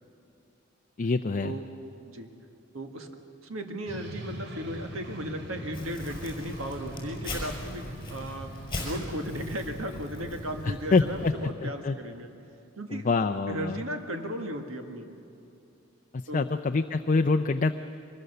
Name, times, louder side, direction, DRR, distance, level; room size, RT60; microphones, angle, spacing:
voice 1, 1.0-1.5 10.6-11.3 11.6-12.0 12.9-13.8 16.1-17.8, left 3 dB, 40° left, 7 dB, 0.5 m, -26 dB
voice 2, 2.7-3.1 3.4-8.5 8.8-12.3 12.8-13.1 13.5-15.1 16.3-16.5, equal, 90° right, 5 dB, 1.8 m, -36 dB
sound 1, 3.9-11.5, right 1 dB, 60° right, 2.7 m, -41 dB
Crumpling crinkling, 5.7-11.3, left 2 dB, 25° left, 5.3 m, -40 dB
24.0 x 21.0 x 6.8 m, 2.7 s
head